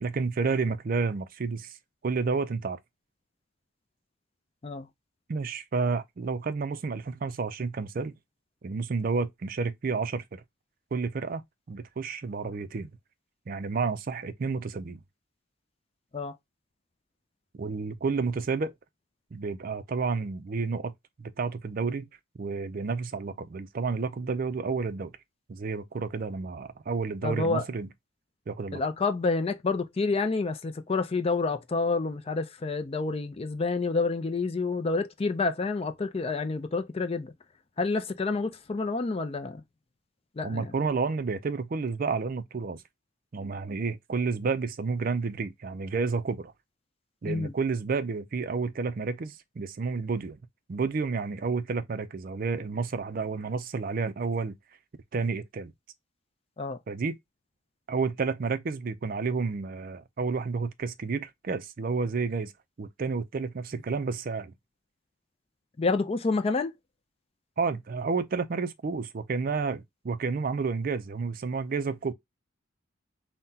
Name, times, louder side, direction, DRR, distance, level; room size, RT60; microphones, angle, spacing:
voice 1, 0.0-1.8 2.0-2.8 5.3-8.1 8.6-10.4 10.9-11.4 11.7-12.9 13.5-15.0 17.5-18.7 19.3-20.9 21.2-22.1 22.4-25.1 25.5-27.9 28.5-28.8 40.4-42.8 43.3-46.5 47.2-50.4 50.7-54.6 55.1-55.7 56.9-57.2 57.9-62.5 62.8-64.5 67.6-72.1, right 4 dB, 45° right, 0.4 m, -30 dB
voice 2, 27.2-27.6 28.7-37.3 37.8-39.6 40.4-40.7 47.2-47.5 56.6-56.8 65.8-66.7, left 3 dB, 30° left, 0.4 m, -28 dB
5.7 x 2.2 x 2.7 m
head